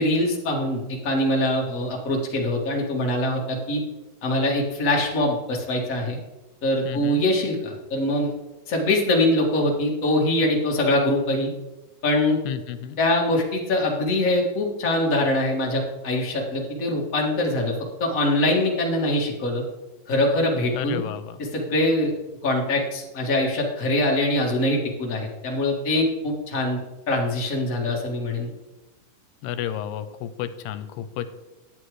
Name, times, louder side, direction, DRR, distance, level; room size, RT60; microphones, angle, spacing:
voice 1, 0.0-3.8 4.2-6.2 6.6-8.3 8.7-11.5 12.0-12.4 13.0-17.7 18.0-19.6 20.1-21.0 21.5-22.1 22.4-26.8 27.1-28.5, left 1 dB, 70° left, -2 dB, 0.7 m, -23 dB
voice 2, 6.9-7.2 12.5-13.0 20.7-21.4 29.4-31.3, left 10 dB, 90° left, 12 dB, 2.6 m, -31 dB
10.5 x 8.0 x 4.8 m, 1.0 s
omnidirectional pair, 4.6 m